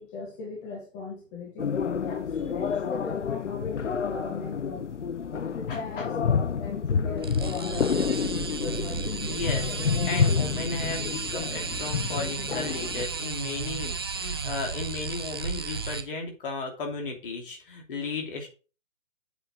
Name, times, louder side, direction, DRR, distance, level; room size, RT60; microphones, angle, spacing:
voice 1, 0.0-1.8 2.0-4.9 5.3-8.4 11.7-11.8, left 4 dB, 20° left, 1.7 m, -39 dB
sound 1, 1.6-13.1, left 6 dB, 65° left, 0.7 m, -29 dB
voice 2, 5.7-6.0 9.2-18.5, left 3 dB, 45° left, 2.9 m, -35 dB
sound 2, 7.2-16.0, right 5 dB, 20° right, 0.5 m, -34 dB
8.0 x 5.8 x 4.9 m
figure-of-eight pair, 135°, 38 cm